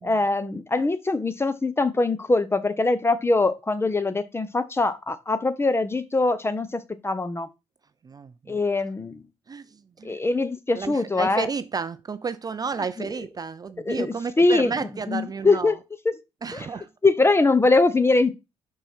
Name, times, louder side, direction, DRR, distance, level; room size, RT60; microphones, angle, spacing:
voice 1, 0.0-7.5 8.5-9.2 10.0-11.5 13.0-13.1 13.8-14.7 15.1-15.8 16.0-16.1 16.5-16.7 17.0-18.3, left 3 dB, 20° left, 1.0 m, -22 dB
voice 2, 8.0-8.6 9.5-10.2 10.7-15.7 16.4-16.9, right 5 dB, 30° right, 0.4 m, -32 dB
5.8 x 5.4 x 4.4 m
cardioid pair, 75°, 12 cm